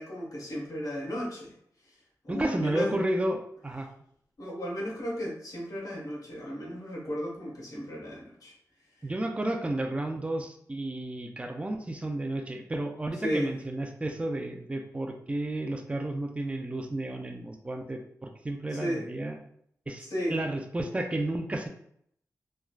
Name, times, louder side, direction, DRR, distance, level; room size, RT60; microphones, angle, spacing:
voice 1, 0.0-1.5 2.2-3.0 4.4-8.5 13.2-13.5 18.7-19.1 20.0-20.4, equal, 65° left, -3 dB, 1.0 m, -34 dB
voice 2, 2.3-3.9 9.0-19.4 19.9-20.0 20.3-21.7, right 1 dB, 20° right, 4 dB, 0.4 m, -32 dB
3.2 x 2.3 x 2.3 m, 0.67 s
cardioid pair, 55°, 6 cm